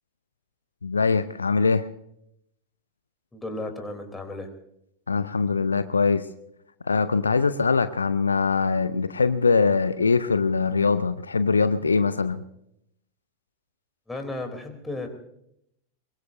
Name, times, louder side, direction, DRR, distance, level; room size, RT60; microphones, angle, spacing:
voice 1, 0.8-1.8 5.1-6.2 6.9-12.4, left 4 dB, 75° left, 13 dB, 0.6 m, -22 dB
voice 2, 3.3-4.5 14.1-15.1, left 2 dB, 10° left, 4 dB, 3.4 m, -34 dB
23.5 x 22.5 x 2.7 m, 0.76 s
figure-of-eight pair, 90°, 0 cm